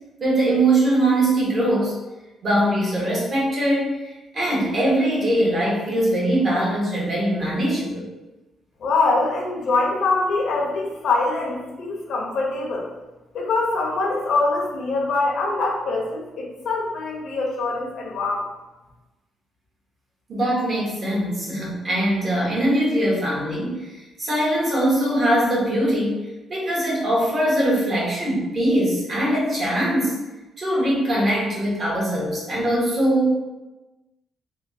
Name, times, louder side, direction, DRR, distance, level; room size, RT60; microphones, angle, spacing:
voice 1, 0.2-2.0 2.4-8.1 20.3-26.2 26.5-30.2 30.6-33.3, right 1 dB, 45° right, -5 dB, 1.4 m, -22 dB
voice 2, 8.8-12.9 13.3-18.4, left 3 dB, 70° left, -2 dB, 0.8 m, -23 dB
3.5 x 2.4 x 2.7 m, 1.1 s
cardioid pair, 90°, 0 cm